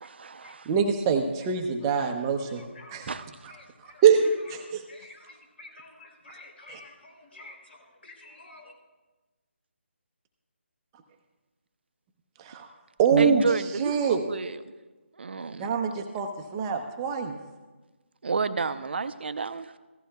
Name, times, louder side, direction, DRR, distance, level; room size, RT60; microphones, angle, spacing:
voice 1, 0.0-0.7 2.0-2.1 3.1-3.2 13.1-14.6 15.2-16.0 18.2-19.7, right 4 dB, 60° right, 11 dB, 0.6 m, -31 dB
voice 2, 0.7-2.6 2.9-3.1 4.0-4.8 6.7-6.8 12.4-12.7 13.0-13.4 13.8-14.2 15.6-17.4, right 6 dB, 15° right, 4 dB, 0.7 m, -24 dB
voice 3, 2.5-3.2 3.5-4.0 4.9-8.7, left 2 dB, 65° left, 2 dB, 3.4 m, -50 dB
15.5 x 14.0 x 2.3 m, 1.2 s
figure-of-eight pair, 155°, 7 cm